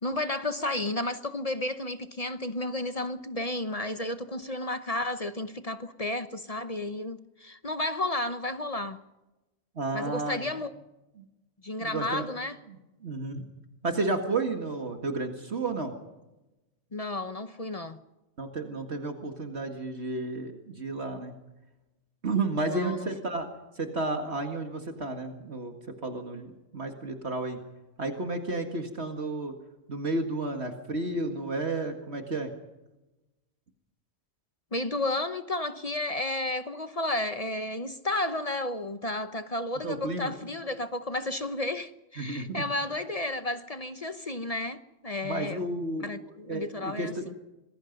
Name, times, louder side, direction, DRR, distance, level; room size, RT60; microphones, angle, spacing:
voice 1, 0.0-9.0 9.9-10.7 11.6-12.6 16.9-18.0 22.6-23.1 34.7-45.6 46.0-47.3, left 2 dB, 35° left, 0.9 m, -32 dB
voice 2, 9.8-10.5 11.2-11.3 11.8-12.3 12.7-13.4 13.8-15.9 18.4-21.4 22.2-23.5 23.8-25.7 26.0-27.6 28.0-29.5 29.9-32.5 39.8-40.3 42.2-42.7 45.2-46.1 46.5-47.2, right 2 dB, 60° right, 2.2 m, -32 dB
26.5 x 21.0 x 5.3 m
omnidirectional pair, 1.3 m